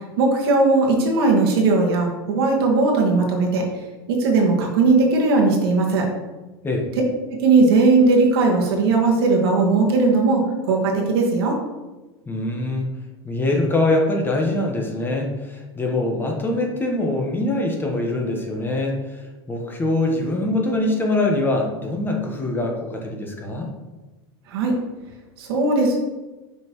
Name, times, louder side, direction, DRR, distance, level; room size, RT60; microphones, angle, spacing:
voice 1, 0.2-3.6 4.1-6.0 7.3-11.6 24.5-24.7 25.4-26.0, right 3 dB, 75° right, 0 dB, 1.6 m, -18 dB
voice 2, 12.3-12.9 13.2-19.2 19.5-23.7, left 2 dB, 15° left, 0 dB, 1.1 m, -23 dB
6.2 x 5.3 x 3.1 m, 1.1 s
supercardioid pair, 120°, 13 cm